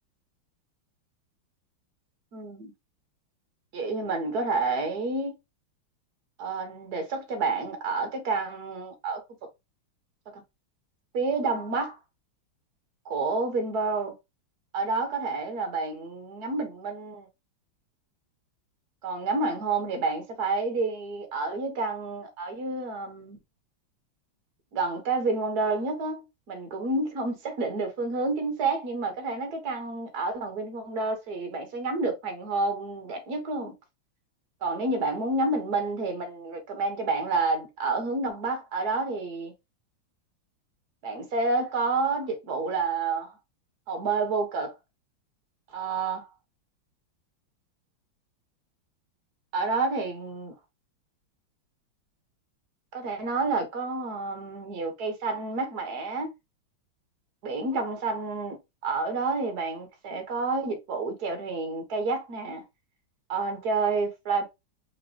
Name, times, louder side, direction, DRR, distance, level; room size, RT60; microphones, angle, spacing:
voice 1, 2.3-2.7 3.7-5.3 6.4-9.2 10.3-10.4 11.1-12.0 13.0-14.1 14.7-17.3 19.0-23.4 24.7-33.7 34.6-39.5 41.0-43.4 43.9-44.7 45.7-46.3 49.5-50.5 52.9-56.3 57.4-62.6 63.3-64.5, right 3 dB, 50° right, 1.7 m, -29 dB
5.0 x 3.5 x 2.8 m
omnidirectional pair, 2.3 m